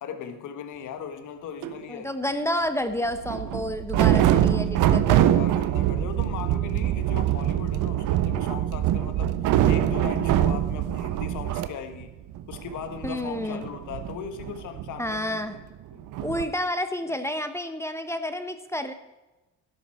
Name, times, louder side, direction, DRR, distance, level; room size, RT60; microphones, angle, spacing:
voice 1, 0.0-2.1 4.5-4.7 5.2-9.3 9.7-12.1 12.5-15.4 15.9-16.1, left 7 dB, 80° left, 9 dB, 1.4 m, -38 dB
sound 1, 1.6-1.8 3.1-11.7 12.0-12.1 12.3-15.6 16.1-16.4, right 11 dB, 85° right, 0.8 m, -24 dB
voice 2, 1.9-5.4 13.0-13.7 15.0-15.6 16.2-18.9, left 1 dB, 10° left, 9 dB, 1.0 m, -30 dB
12.5 x 11.0 x 4.4 m, 1.1 s
cardioid pair, 90°, 30 cm